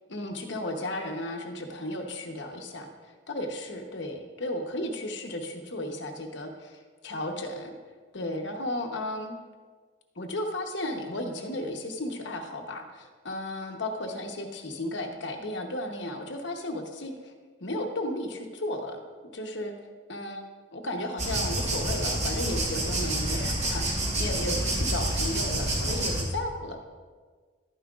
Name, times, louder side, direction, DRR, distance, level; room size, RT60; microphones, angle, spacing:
voice 1, 0.1-7.8 8.1-9.4 10.2-17.3 17.6-19.7 20.1-20.4 20.7-26.9, left 1 dB, 60° left, 3 dB, 1.0 m, -34 dB
sound 1, 21.2-26.2, right 1 dB, 35° right, 1.4 m, -28 dB
12.0 x 9.8 x 2.4 m, 1.5 s
head